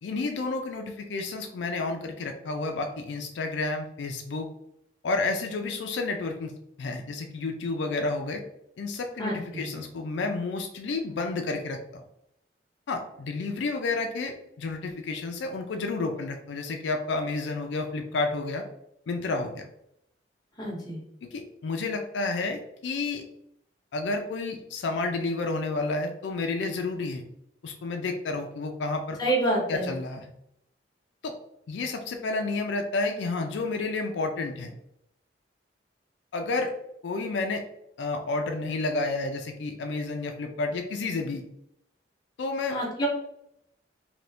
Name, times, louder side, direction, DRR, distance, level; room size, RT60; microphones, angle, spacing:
voice 1, 0.0-4.5 5.0-6.5 6.8-8.4 8.8-12.0 12.9-18.6 19.1-19.7 21.2-23.2 23.9-27.2 27.6-29.2 29.7-30.3 31.2-31.3 31.7-34.7 36.3-36.7 37.0-37.6 38.0-41.4 42.4-42.8, left 3 dB, 75° left, 4 dB, 0.4 m, -30 dB
voice 2, 9.2-9.7 20.6-21.0 29.2-29.9 42.7-43.1, right 1 dB, 20° left, -3 dB, 0.8 m, -28 dB
2.7 x 2.6 x 3.3 m, 0.77 s
head